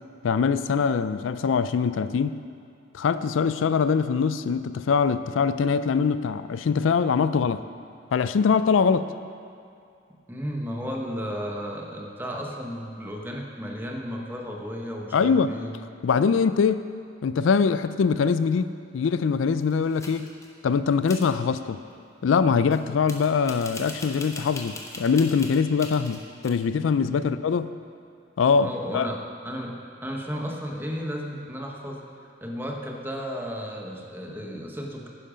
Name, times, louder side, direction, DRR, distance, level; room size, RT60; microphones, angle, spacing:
voice 1, 0.2-2.4 2.9-7.6 8.1-9.1 15.1-15.5 16.0-16.9 17.2-20.3 20.6-21.8 22.2-27.7 28.4-28.7 28.9-29.1, left 5 dB, 85° left, 13 dB, 0.4 m, -23 dB
voice 2, 10.3-15.7 27.1-27.4 28.6-29.2 29.4-32.0 32.4-35.1, equal, 10° right, 0 dB, 1.1 m, -34 dB
sound 1, 19.6-20.5 21.1-21.3 22.7-22.8 23.1-26.5, left 2 dB, 15° left, 1.1 m, -40 dB
11.0 x 10.0 x 5.1 m, 2.4 s
head